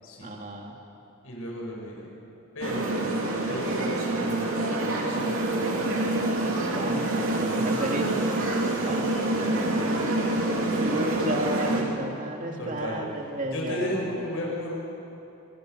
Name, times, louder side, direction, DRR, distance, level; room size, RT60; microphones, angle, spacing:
voice 1, 0.2-0.7 6.7-8.1 8.8-9.1 10.8-14.1, right 1 dB, 35° right, 1 dB, 2.6 m, -32 dB
voice 2, 1.2-2.1 2.5-2.9 3.5-4.9 5.1-5.4 9.9-10.9 12.6-13.0 13.5-14.8, equal, 70° left, -2 dB, 5.8 m, -34 dB
sound 1, 2.6-11.8, right 2 dB, 65° right, 3.0 m, -26 dB
25.5 x 21.0 x 6.6 m, 2.9 s
head